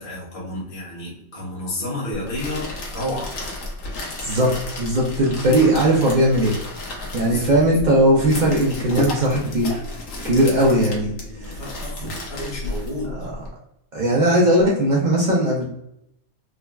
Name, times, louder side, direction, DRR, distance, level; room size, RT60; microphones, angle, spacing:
voice 1, 0.0-3.3 7.2-7.6 10.4-13.1, left 1 dB, 30° left, -6 dB, 0.9 m, -31 dB
sound 1, 2.1-13.5, left 2 dB, 65° left, 1.1 m, -32 dB
voice 2, 4.2-6.5 7.1-9.8 10.2-11.1 11.4-11.6 12.0-12.1 13.0-13.3 13.9-15.6, right 1 dB, 75° right, -4 dB, 0.4 m, -18 dB
3.7 x 2.1 x 2.2 m, 0.80 s
omnidirectional pair, 1.5 m